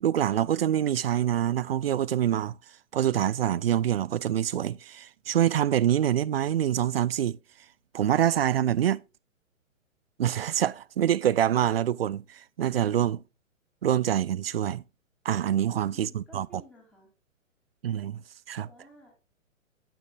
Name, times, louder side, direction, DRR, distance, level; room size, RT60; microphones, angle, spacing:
voice 1, 0.0-2.6 2.9-7.4 7.9-9.0 10.2-13.2 13.8-14.8 15.2-16.5 17.8-18.2 18.5-18.7, right 10 dB, 50° right, 0.4 m, -25 dB
voice 2, 15.7-17.1 18.5-19.1, right 1 dB, 5° left, 2.9 m, -53 dB
9.1 x 8.7 x 2.5 m
figure-of-eight pair, 125°, 41 cm